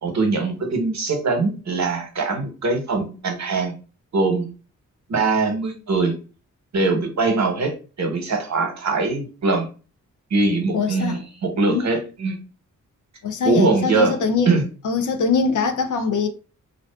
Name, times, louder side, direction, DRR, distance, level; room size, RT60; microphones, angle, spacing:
voice 1, 0.0-3.7 4.1-4.5 5.1-6.1 6.7-9.7 10.3-12.4 13.4-14.2 14.5-14.6, right 3 dB, 55° right, 0.9 m, -22 dB
voice 2, 10.7-11.2 11.7-11.8 13.2-14.6 14.8-16.3, left 5 dB, 65° left, 0.5 m, -22 dB
2.4 x 2.4 x 2.2 m
cardioid pair, 55°, 33 cm